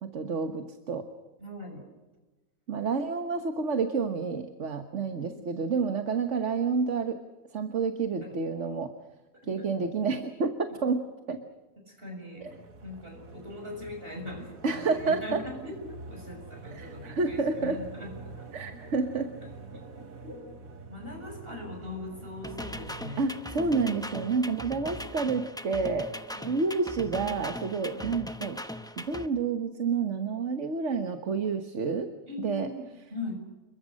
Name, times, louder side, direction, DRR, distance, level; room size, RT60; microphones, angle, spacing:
voice 1, 0.0-1.1 2.7-7.2 7.5-8.9 9.5-11.0 11.3-11.4 14.6-15.4 16.7-17.8 18.5-19.3 23.2-26.1 26.5-28.6 29.0-32.1 32.4-32.7, right 4 dB, 60° right, 7 dB, 1.6 m, -29 dB
voice 2, 1.4-1.9 5.2-5.5 8.2-8.4 9.5-9.7 10.8-10.9 11.9-12.5 12.8-19.2 19.7-20.5 20.9-23.3 26.3-26.6 27.9-28.1 32.3-33.3, left 2 dB, 40° right, 3 dB, 7.2 m, -41 dB
sound 1, 12.4-25.5, right 4 dB, 90° right, 2.1 m, -47 dB
sound 2, 22.4-29.3, left 1 dB, 5° left, 0.8 m, -39 dB
29.0 x 22.5 x 6.4 m, 1.2 s
omnidirectional pair, 1.4 m